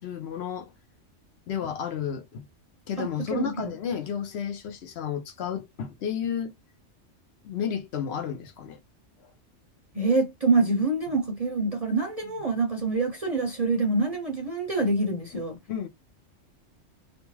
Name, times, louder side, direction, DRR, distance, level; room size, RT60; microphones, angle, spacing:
voice 1, 0.0-0.7 1.5-2.5 2.9-6.5 7.4-8.8 15.3-15.4 15.7-15.9, left 8 dB, 65° left, 0.9 m, -32 dB
voice 2, 3.0-3.6 9.9-15.6, right 3 dB, 40° right, 0.6 m, -26 dB
2.5 x 2.3 x 3.1 m
omnidirectional pair, 1.2 m